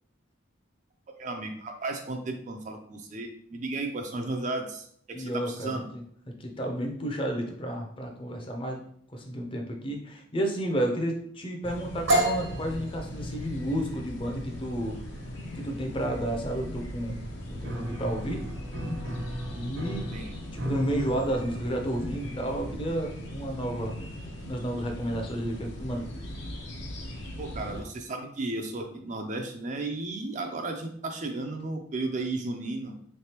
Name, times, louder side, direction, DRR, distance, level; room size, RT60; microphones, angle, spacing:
voice 1, 1.2-5.9 20.1-20.3 27.4-32.9, right 2 dB, 40° right, 4 dB, 0.4 m, -34 dB
voice 2, 5.1-6.0 6.4-8.8 9.1-15.0 15.5-17.2 17.5-18.4 18.7-19.0 19.5-20.1 20.6-23.9 24.5-26.1, right 1 dB, 25° left, 3 dB, 0.6 m, -31 dB
sound 1, 11.6-27.8, equal, 70° left, 0.7 m, -39 dB
sound 2, 12.1-19.7, right 1 dB, 85° right, 1.3 m, -33 dB
Piano, 17.6-26.1, equal, 65° right, 0.7 m, -40 dB
3.7 x 3.3 x 2.9 m, 0.65 s
head